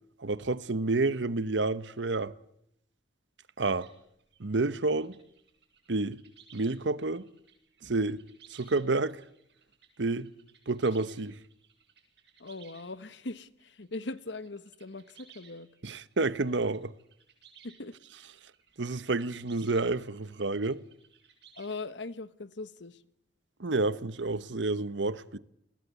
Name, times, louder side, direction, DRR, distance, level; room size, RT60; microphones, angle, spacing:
voice 1, 0.2-2.3 3.6-3.9 4.4-5.1 5.9-6.2 6.5-7.3 7.8-8.2 8.5-9.2 10.0-10.3 10.7-11.4 15.8-16.9 18.8-20.8 23.6-25.4, right 3 dB, 85° right, 1.1 m, -29 dB
sound 1, 3.8-6.7 7.0-19.9 20.1-22.1, right 7 dB, 70° right, 7.9 m, -59 dB
voice 2, 12.4-15.7 17.6-17.9 21.6-23.0, left 3 dB, 80° left, 1.3 m, -40 dB
30.0 x 21.5 x 8.3 m
head